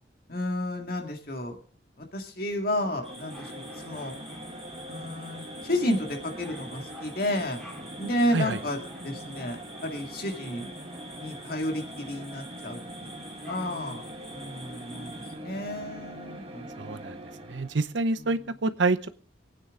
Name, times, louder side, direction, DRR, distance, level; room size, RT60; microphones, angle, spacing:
voice 1, 0.3-1.6 2.0-4.1 4.9-7.6 8.0-10.7 11.1-12.8 13.5-14.0 14.3-16.7, left 1 dB, 55° left, 3 dB, 2.1 m, -31 dB
sound 1, 2.6-18.0, right 1 dB, 30° right, 1.5 m, -42 dB
sound 2, 3.0-15.4, equal, 5° left, 2.8 m, -47 dB
voice 2, 16.8-17.1 17.5-19.1, right 3 dB, 80° right, 13 dB, 0.8 m, -27 dB
24.5 x 9.2 x 3.7 m, 0.42 s
head